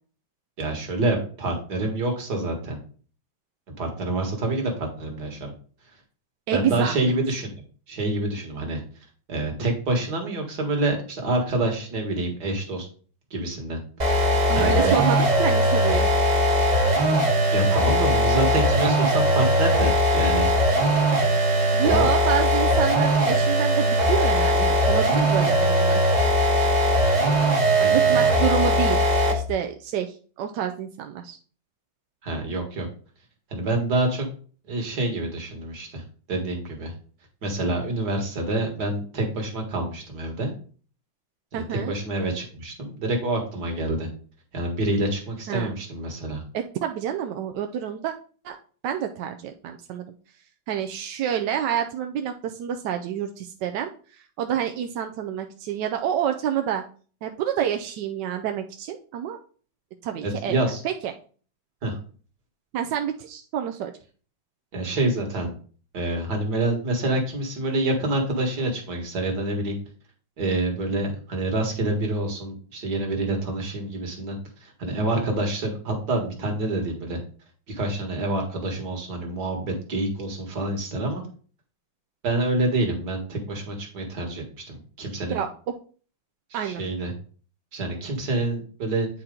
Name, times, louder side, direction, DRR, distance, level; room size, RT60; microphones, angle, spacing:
voice 1, 0.6-2.8 3.8-5.5 6.5-7.5 7.9-8.8 9.3-12.9 13.3-13.8 14.2-15.0 17.5-20.5 21.8-22.1 27.7-28.3 32.2-32.9 33.5-34.3 34.7-36.0 36.3-36.9 37.4-40.5 41.5-44.1 44.5-46.4 60.2-60.8 61.8-61.9 64.7-65.6 65.9-69.8 70.4-77.2 77.7-81.2 82.2-85.4 86.5-87.1 87.7-89.1, right 2 dB, 55° right, 2 dB, 2.1 m, -27 dB
voice 2, 6.5-7.1 14.5-16.1 21.7-26.0 27.9-31.4 41.5-41.9 45.5-45.7 46.5-48.1 48.4-48.6 48.8-50.0 50.7-56.8 57.2-59.4 60.0-60.6 60.8-61.1 62.7-63.9 85.3-85.5 86.5-86.8, right 9 dB, 75° right, 5 dB, 1.1 m, -28 dB
sound 1, 14.0-29.5, equal, 25° right, 1.0 m, -20 dB
9.0 x 4.3 x 3.7 m, 0.41 s
omnidirectional pair, 2.1 m